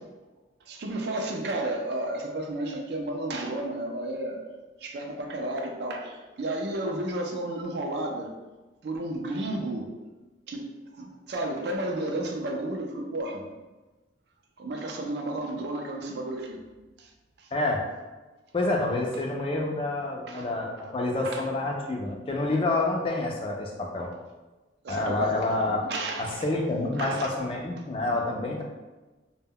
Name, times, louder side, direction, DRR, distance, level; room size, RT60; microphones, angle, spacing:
voice 1, 0.6-4.4 4.8-8.3 8.8-9.9 10.5-13.6 14.6-16.6 17.0-17.1 17.4-17.5 20.3-20.5 20.8-20.9 21.2-21.5 24.0-24.1 24.8-26.5 26.9-27.3 27.8-27.9, right 1 dB, 60° right, 2 dB, 0.4 m, -32 dB
voice 2, 17.5-17.8 18.5-24.1 24.9-25.9 26.2-28.6, left 2 dB, 30° left, 0 dB, 0.3 m, -28 dB
2.1 x 2.1 x 3.5 m, 1.2 s
head